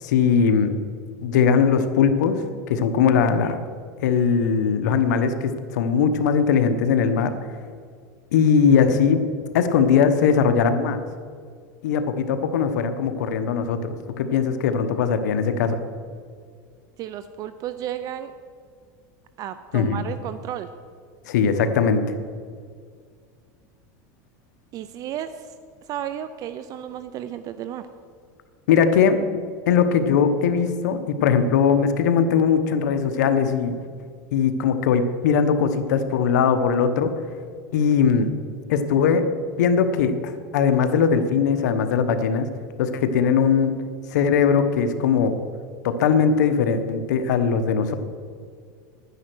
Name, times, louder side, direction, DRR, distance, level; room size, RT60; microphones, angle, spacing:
voice 1, 0.0-0.7 1.2-3.6 4.0-7.3 8.3-9.3 9.5-11.0 11.8-15.8 19.7-20.0 21.3-22.0 28.7-29.2 29.7-33.8 34.3-37.1 37.7-38.3 38.7-39.2 39.6-40.1 40.5-42.5 42.8-43.8 44.1-45.4 45.8-47.9, left 6 dB, 90° left, 9 dB, 1.1 m, -20 dB
voice 2, 17.0-18.3 19.4-20.7 24.7-25.5 25.9-27.9, right 10 dB, 40° right, 12 dB, 0.5 m, -33 dB
10.5 x 9.8 x 6.2 m, 2.1 s
supercardioid pair, 135°, 9 cm